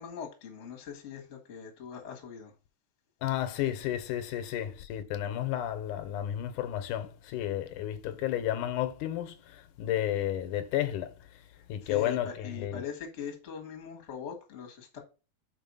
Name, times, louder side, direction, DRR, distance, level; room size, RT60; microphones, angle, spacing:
voice 1, 0.0-2.5 11.5-15.0, left 7 dB, 35° left, 1.1 m, -41 dB
voice 2, 3.2-11.1 11.7-12.8, left 12 dB, 85° left, 2.3 m, -32 dB
5.6 x 4.8 x 5.4 m
omnidirectional pair, 3.6 m